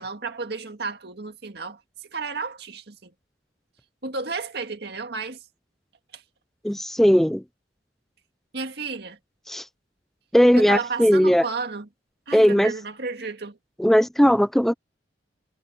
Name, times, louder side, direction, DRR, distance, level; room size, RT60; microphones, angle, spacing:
voice 1, 0.0-1.8 2.1-3.1 4.0-5.4 6.1-6.2 8.5-9.2 10.5-11.9 12.3-13.6, right 4 dB, 65° right, 2.1 m, -32 dB
voice 2, 6.6-7.4 9.5-9.6 10.3-11.4 12.3-12.7 13.8-14.7, equal, ahead, 0.4 m, -18 dB
head